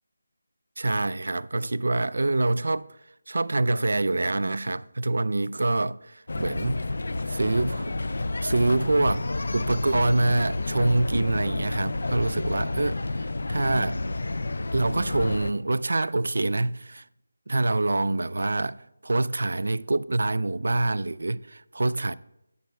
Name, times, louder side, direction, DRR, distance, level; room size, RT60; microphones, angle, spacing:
voice 1, 0.8-2.9 3.3-6.8 7.3-8.0 8.4-14.0 14.7-17.0 17.5-22.1, right 2 dB, 65° right, 0.3 m, -26 dB
sound 1, 6.3-15.5, left 2 dB, 55° left, 0.4 m, -30 dB
15.0 x 9.2 x 2.3 m
figure-of-eight pair, 175°, 0 cm